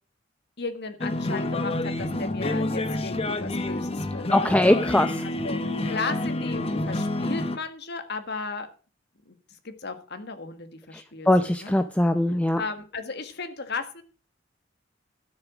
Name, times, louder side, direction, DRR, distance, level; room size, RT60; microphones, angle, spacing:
voice 1, 0.6-4.6 5.2-8.7 9.3-9.4 9.6-11.7 12.6-14.0, left 3 dB, 60° left, 8 dB, 1.7 m, -35 dB
sound 1, 1.0-7.6, left 2 dB, 30° left, 1.1 m, -28 dB
voice 2, 4.3-5.1 11.3-12.6, left 1 dB, 5° left, 8 dB, 0.6 m, -21 dB
12.5 x 7.2 x 6.1 m, 0.36 s
head